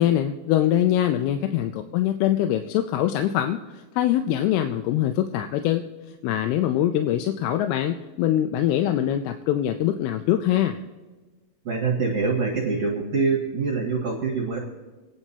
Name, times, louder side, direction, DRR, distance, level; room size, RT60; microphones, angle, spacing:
voice 1, 0.0-3.6 4.0-5.9 6.2-10.8, left 11 dB, 85° left, 7 dB, 2.6 m, -23 dB
voice 2, 11.6-14.6, right 4 dB, 50° right, -2 dB, 2.3 m, -25 dB
28.5 x 10.0 x 2.8 m, 1.3 s
omnidirectional pair, 4.5 m